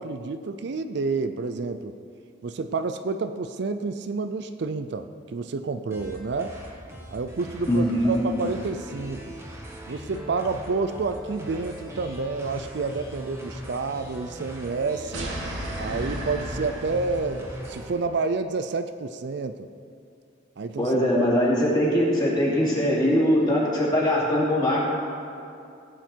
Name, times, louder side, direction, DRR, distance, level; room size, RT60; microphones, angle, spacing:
voice 1, 0.0-1.9 2.4-6.6 7.1-9.3 9.9-15.3 15.8-19.7 20.6-21.3, right 4 dB, 60° right, 9 dB, 0.4 m, -29 dB
sound 1, 5.9-17.9, equal, 15° right, 1.3 m, -40 dB
voice 2, 7.7-8.2 20.8-24.8, equal, 20° left, -6 dB, 2.9 m, -21 dB
sound 2, 15.1-17.7, right 1 dB, 80° right, 2.3 m, -34 dB
17.5 x 8.0 x 4.5 m, 2.5 s
head